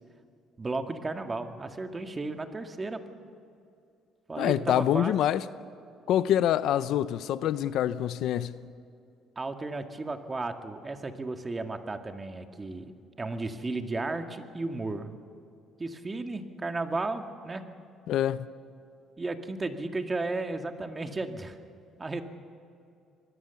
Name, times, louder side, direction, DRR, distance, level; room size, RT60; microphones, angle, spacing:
voice 1, 0.6-3.0 4.3-5.1 9.4-12.9 13.2-15.1 15.8-17.7 19.2-21.6 22.0-22.2, right 3 dB, 25° right, 1.8 m, -34 dB
voice 2, 4.4-5.4 6.1-8.6 18.1-18.4, left 11 dB, 75° left, 0.7 m, -26 dB
25.0 x 20.5 x 7.1 m
cardioid pair, 105°, 0 cm